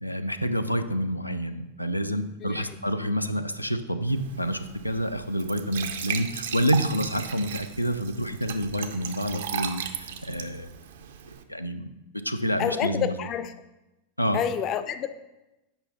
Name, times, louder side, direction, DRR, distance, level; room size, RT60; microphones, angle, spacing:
voice 1, 0.0-10.7 11.5-11.9 12.2-13.1 14.2-14.4, equal, 90° left, 0.5 m, -28 dB
voice 2, 2.4-2.8 12.6-13.5 14.3-15.1, left 9 dB, 35° left, 0.5 m, -29 dB
Glass / Trickle dribble / Fill (with liquid), 4.1-11.4, right 8 dB, 60° right, 0.6 m, -36 dB
8.8 x 5.4 x 4.1 m
figure-of-eight pair, 90°, 0 cm